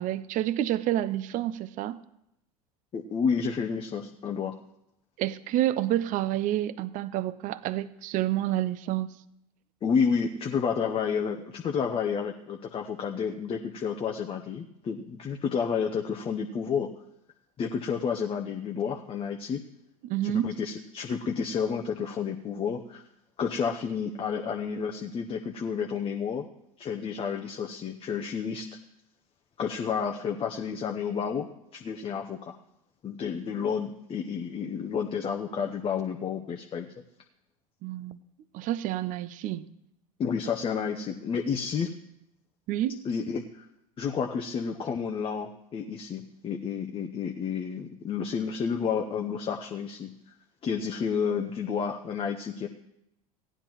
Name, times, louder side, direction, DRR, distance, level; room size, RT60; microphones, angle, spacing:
voice 1, 0.0-2.0 5.2-9.1 20.0-20.5 37.8-38.2 38.5-39.7 42.7-43.1, right 13 dB, 45° right, 17 dB, 0.5 m, -29 dB
voice 2, 2.9-4.6 9.8-16.9 17.6-19.6 20.2-23.0 23.4-26.4 26.8-28.7 29.6-31.5 31.7-32.6 33.0-36.9 40.2-41.9 43.0-43.7 44.0-50.1 50.6-52.7, left 6 dB, 30° left, 3 dB, 0.7 m, -30 dB
17.0 x 10.0 x 3.0 m, 0.82 s
figure-of-eight pair, 75°, 19 cm